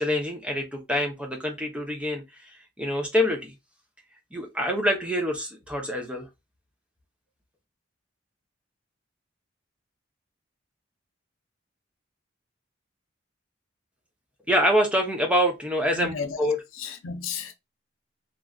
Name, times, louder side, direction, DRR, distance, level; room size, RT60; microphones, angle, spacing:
voice 1, 0.0-3.5 4.3-6.3 14.5-16.6, equal, 5° right, 0.6 m, -26 dB
voice 2, 15.9-17.5, left 6 dB, 85° left, 0.5 m, -34 dB
3.1 x 2.4 x 2.2 m
head